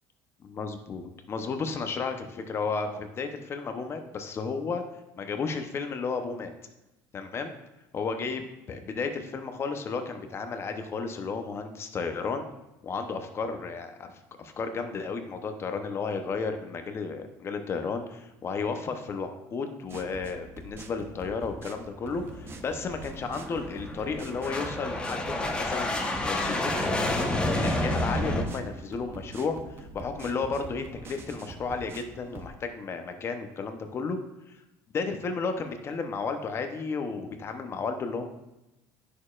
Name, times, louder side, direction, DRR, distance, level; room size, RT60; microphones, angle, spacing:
voice 1, 0.5-4.8 5.2-6.5 7.1-7.5 7.9-12.4 12.8-14.1 14.4-34.2 34.5-34.6 34.9-38.3, left 4 dB, 35° left, 6 dB, 0.8 m, -33 dB
sound 1, 19.9-32.5, right 3 dB, 35° right, 0.6 m, -45 dB
sound 2, 22.1-28.4, left 1 dB, 15° left, 1.0 m, -29 dB
9.3 x 6.5 x 2.4 m, 0.97 s
cardioid pair, 115°, 7 cm